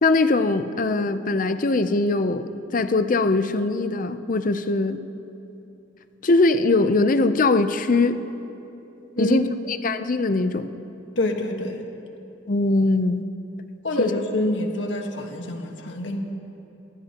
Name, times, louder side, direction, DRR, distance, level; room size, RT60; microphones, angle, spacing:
voice 1, 0.0-5.0 6.2-8.2 9.2-10.7 12.5-13.3 14.0-14.1, left 3 dB, 45° left, 10 dB, 0.6 m, -21 dB
voice 2, 11.2-11.8 13.8-16.2, left 1 dB, 80° left, 3 dB, 1.5 m, -26 dB
29.5 x 15.0 x 2.9 m, 2.9 s
head